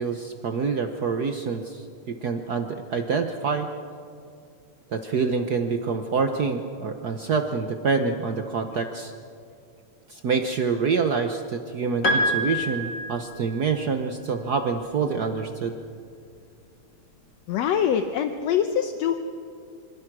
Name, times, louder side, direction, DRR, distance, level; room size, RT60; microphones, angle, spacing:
voice 1, 0.0-3.7 4.9-9.1 10.1-15.8, right 5 dB, 70° right, 5 dB, 0.9 m, -26 dB
Piano, 12.0-13.7, equal, 40° left, 2.9 m, -26 dB
voice 2, 17.5-19.2, left 8 dB, 70° left, 7 dB, 2.0 m, -24 dB
26.5 x 26.0 x 6.2 m, 2.4 s
omnidirectional pair, 3.3 m